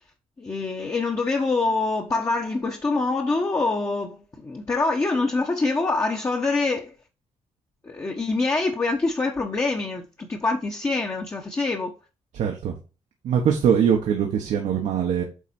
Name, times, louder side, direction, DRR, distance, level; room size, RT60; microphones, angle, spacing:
voice 1, 0.4-6.9 7.8-11.9, left 3 dB, 25° left, 1.1 m, -25 dB
voice 2, 12.3-12.7 13.2-15.2, right 8 dB, 80° right, 1.4 m, -22 dB
8.2 x 4.1 x 4.4 m
cardioid pair, 110°, 12 cm